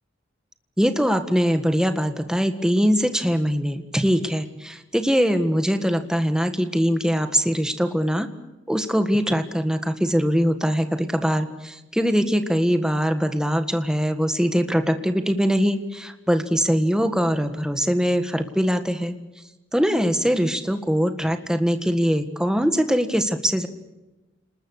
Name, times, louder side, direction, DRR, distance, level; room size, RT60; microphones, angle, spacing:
voice 1, 0.8-8.3 8.7-19.1 19.7-23.7, equal, 5° right, 8 dB, 1.6 m, -22 dB
29.5 x 20.5 x 6.5 m, 1.1 s
head